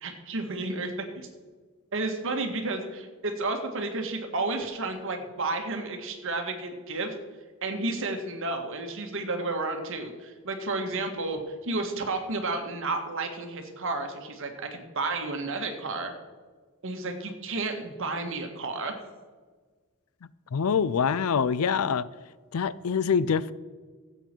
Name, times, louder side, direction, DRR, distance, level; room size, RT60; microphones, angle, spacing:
voice 1, 0.0-1.3 1.9-7.1 7.6-16.1 16.8-19.0, right 3 dB, 65° right, 1.7 m, -32 dB
voice 2, 20.5-22.1 22.5-23.5, left 6 dB, 80° left, 0.5 m, -25 dB
16.0 x 8.2 x 4.5 m
head